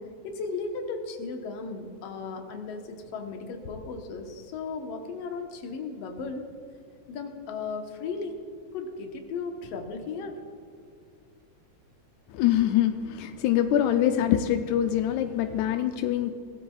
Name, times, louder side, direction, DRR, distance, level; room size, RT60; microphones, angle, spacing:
voice 1, 0.0-6.4 7.1-8.4 8.7-10.4, left 4 dB, 65° left, 3 dB, 2.1 m, -36 dB
voice 2, 12.3-16.3, left 11 dB, 85° left, 7 dB, 1.9 m, -24 dB
19.0 x 14.0 x 2.4 m, 2.3 s
omnidirectional pair, 3.3 m